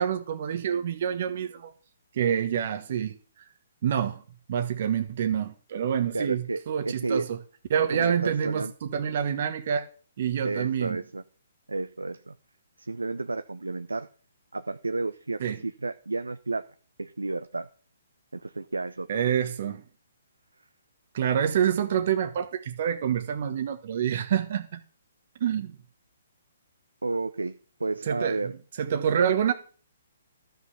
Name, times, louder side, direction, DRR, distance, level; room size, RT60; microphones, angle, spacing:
voice 1, 0.0-1.7 2.1-3.2 3.8-4.2 4.5-7.4 7.7-9.9 10.2-11.0 15.4-15.6 19.1-19.8 21.1-24.8 25.4-25.8 28.1-28.5 28.8-29.5, right 8 dB, 50° right, 1.2 m, -27 dB
voice 2, 6.1-7.3 7.9-8.7 10.4-11.2 11.7-12.4 12.8-14.1 14.5-16.6 17.0-17.7 18.3-19.4 27.0-27.5 27.8-28.6, right 3 dB, 85° right, 0.6 m, -32 dB
12.5 x 5.8 x 6.7 m
figure-of-eight pair, 135°, 0 cm